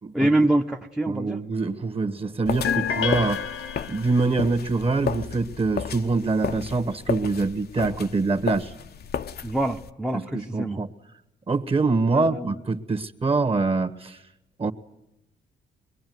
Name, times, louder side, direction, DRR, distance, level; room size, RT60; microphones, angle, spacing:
voice 1, 0.1-1.4 9.4-10.8 12.1-12.5, right 1 dB, 5° right, 1 dB, 0.9 m, -25 dB
voice 2, 1.1-3.5 3.9-8.7 10.1-10.9 11.5-14.2 14.6-14.7, right 3 dB, 30° right, 9 dB, 1.6 m, -25 dB
sound 1, 2.5-9.9, left 8 dB, 55° left, 0.9 m, -33 dB
sound 2, 2.6-4.4, left 7 dB, 80° left, 1.9 m, -28 dB
23.0 x 21.5 x 9.5 m, 0.89 s
cardioid pair, 90°, 20 cm